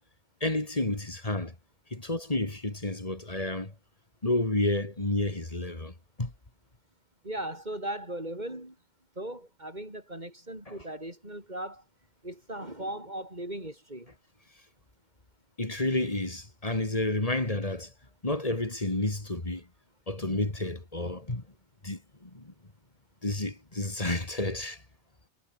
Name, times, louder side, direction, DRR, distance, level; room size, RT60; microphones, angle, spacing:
voice 1, 0.4-1.5 1.9-3.7 4.2-6.3 10.7-10.8 15.6-17.9 18.2-19.7 20.1-21.4 21.8-22.5 23.2-24.8, left 2 dB, 25° left, 2.7 m, -30 dB
voice 2, 7.2-8.8 9.2-11.8 12.2-14.1, right 1 dB, 30° right, 7.6 m, -38 dB
omnidirectional pair, 1.4 m